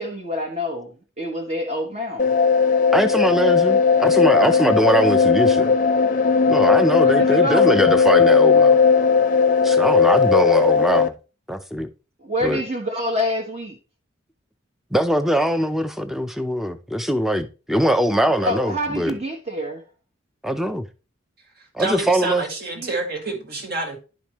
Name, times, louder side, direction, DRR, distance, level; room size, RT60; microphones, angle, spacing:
voice 1, 0.0-2.3 4.5-4.7 7.0-7.7 12.2-13.8 18.4-19.8 22.8-22.9, left 1 dB, 35° right, 1.2 m, -27 dB
sound 1, 2.2-11.1, left 5 dB, 40° left, 0.6 m, -17 dB
voice 2, 2.9-5.8 6.5-8.8 9.6-11.1 11.5-11.9 12.4-12.6 14.9-19.2 20.4-20.8 21.7-22.4, equal, ahead, 0.6 m, -21 dB
voice 3, 21.8-24.0, right 3 dB, 50° right, 1.9 m, -27 dB
11.0 x 5.1 x 3.0 m
head